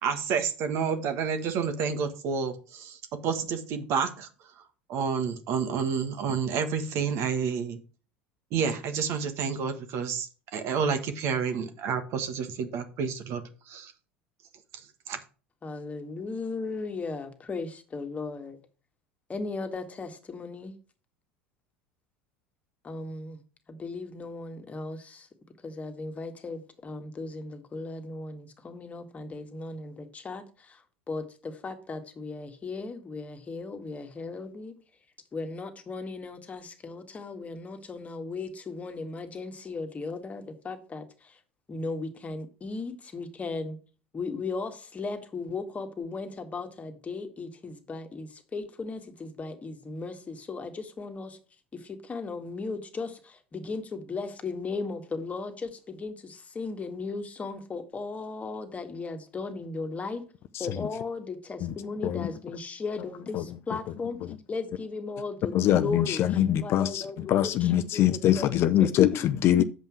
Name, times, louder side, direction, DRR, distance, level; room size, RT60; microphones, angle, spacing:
voice 1, 0.0-4.3 4.9-7.8 8.5-13.9 15.1-15.2, right 6 dB, 55° right, 1.5 m, -29 dB
voice 2, 15.6-18.6 19.3-20.7 22.8-23.4 23.7-25.3 25.6-30.8 31.1-34.7 35.3-41.4 41.7-43.8 44.1-51.4 51.7-60.2 60.6-64.2 64.5-68.5 69.1-69.2, left 3 dB, 25° left, 1.8 m, -36 dB
voice 3, 65.5-69.6, left 11 dB, 45° left, 0.6 m, -23 dB
7.5 x 5.5 x 6.1 m
hypercardioid pair, 80°, 6 cm